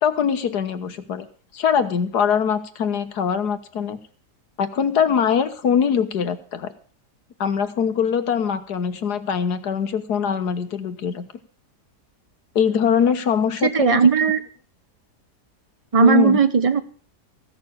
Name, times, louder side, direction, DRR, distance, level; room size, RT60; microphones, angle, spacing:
voice 1, 0.0-1.3 1.5-4.0 4.6-6.7 7.4-11.3 12.6-14.1 16.0-16.4, left 7 dB, 70° left, 9 dB, 1.8 m, -22 dB
voice 2, 13.6-14.4 15.9-16.8, right 5 dB, 30° right, 12 dB, 0.6 m, -17 dB
15.5 x 6.8 x 8.6 m, 0.43 s
omnidirectional pair, 1.8 m